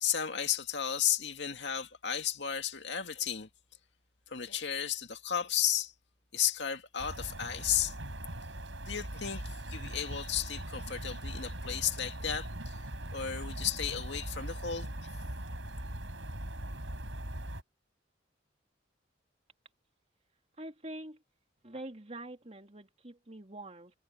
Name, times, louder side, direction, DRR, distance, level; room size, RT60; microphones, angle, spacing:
voice 1, 0.0-3.5 4.3-5.9 6.3-8.0 8.9-12.8 13.1-14.9, left 9 dB, 65° left, 2.3 m, -33 dB
sound 1, 7.0-17.6, right 1 dB, 80° right, 7.5 m, -40 dB
voice 2, 20.6-21.2 21.6-23.9, right 1 dB, 35° right, 2.9 m, -45 dB
head